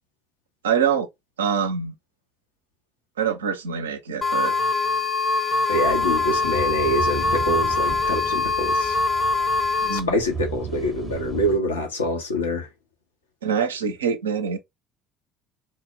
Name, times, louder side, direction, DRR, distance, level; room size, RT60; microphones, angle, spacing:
voice 1, 0.6-1.1 1.4-1.9 3.2-4.5 9.8-10.2 13.4-14.6, right 7 dB, 80° right, 0.4 m, -24 dB
sound 1, 4.2-10.0, left 3 dB, 20° left, 0.5 m, -23 dB
voice 2, 5.7-9.0 9.9-12.7, left 1 dB, 85° left, 0.6 m, -25 dB
sound 2, 5.8-11.6, right 6 dB, 30° right, 0.6 m, -35 dB
2.0 x 2.0 x 3.4 m
figure-of-eight pair, 60°, 0 cm